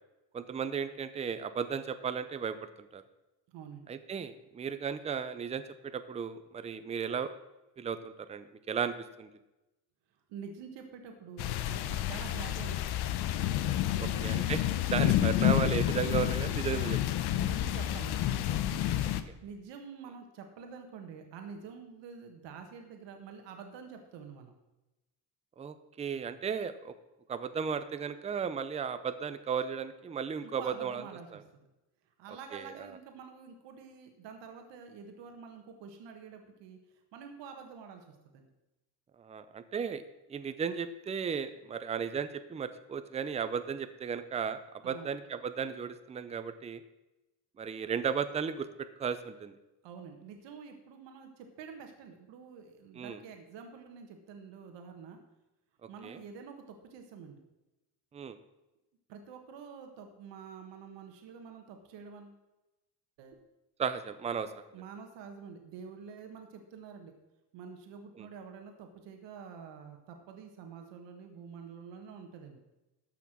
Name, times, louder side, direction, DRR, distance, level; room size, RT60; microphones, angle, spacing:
voice 1, 0.3-2.6 2.9-3.0 3.9-7.3 7.8-9.3 14.0-14.6 14.9-17.2 25.6-26.9 27.3-31.0 31.3-31.4 32.5-33.0 39.2-40.0 40.3-44.6 44.8-46.8 47.6-49.5 52.9-53.2 55.8-56.2 58.1-58.4 63.8-64.5 68.2-68.3, right 6 dB, 15° right, 11 dB, 0.5 m, -35 dB
voice 2, 3.5-3.9 10.3-13.2 13.9-14.5 17.4-19.0 19.4-24.5 30.6-31.3 31.5-31.7 32.2-36.8 37.1-38.5 44.8-45.1 49.8-55.2 55.9-57.4 59.1-62.4 63.2-63.3 64.7-67.1 67.5-72.6, right 6 dB, 75° right, 5 dB, 1.6 m, -47 dB
sound 1, 11.4-19.2, left 12 dB, 65° left, 0.8 m, -29 dB
13.0 x 5.9 x 6.0 m, 1.0 s
cardioid pair, 155°, 43 cm